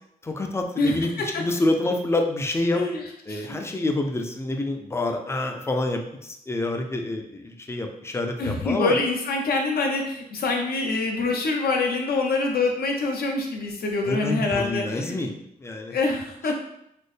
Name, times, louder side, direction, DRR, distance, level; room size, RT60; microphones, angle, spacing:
voice 1, 0.2-1.1 1.4-2.8 3.3-9.0 14.0-15.9 16.5-16.6, left 2 dB, 15° left, 3 dB, 0.3 m, -27 dB
voice 2, 0.8-1.4 2.7-3.5 8.4-15.2 15.9-16.5, left 3 dB, 85° left, 2 dB, 0.6 m, -25 dB
4.1 x 2.0 x 3.2 m, 0.78 s
wide cardioid pair, 170°, 15 cm